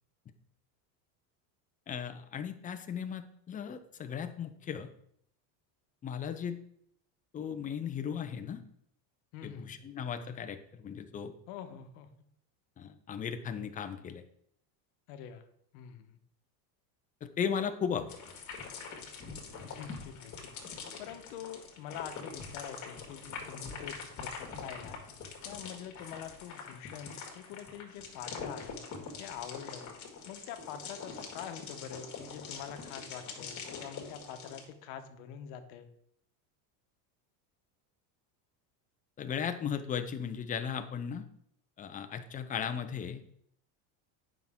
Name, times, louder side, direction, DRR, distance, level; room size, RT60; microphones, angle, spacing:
voice 1, 1.9-4.9 6.0-6.6 7.3-8.6 9.4-11.3 12.8-14.2 17.2-18.1 39.2-41.3 41.8-43.2, left 7 dB, 20° left, 8 dB, 0.5 m, -36 dB
voice 2, 9.3-9.8 11.5-12.1 15.1-15.5 15.7-16.2 19.6-25.0 25.4-28.8 29.2-29.9 30.3-35.9, left 9 dB, 65° left, 8 dB, 1.1 m, -45 dB
sound 1, 18.1-34.6, left 5 dB, 40° left, 1.9 m, -44 dB
9.2 x 5.9 x 3.6 m, 0.70 s
supercardioid pair, 140°, 47 cm